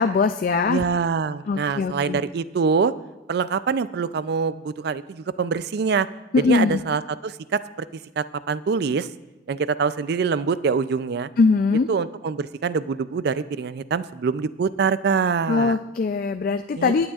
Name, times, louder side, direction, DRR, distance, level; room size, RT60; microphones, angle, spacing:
voice 1, 0.0-0.8 1.5-2.2 6.3-6.8 11.4-11.9 15.5-17.1, left 4 dB, 50° left, 8 dB, 0.3 m, -21 dB
voice 2, 0.7-2.9 3.3-6.1 6.4-7.9 8.2-9.1 9.5-11.3 11.9-15.8 16.7-17.1, right 5 dB, 60° right, 15 dB, 0.4 m, -24 dB
26.0 x 8.8 x 2.4 m, 1.0 s
head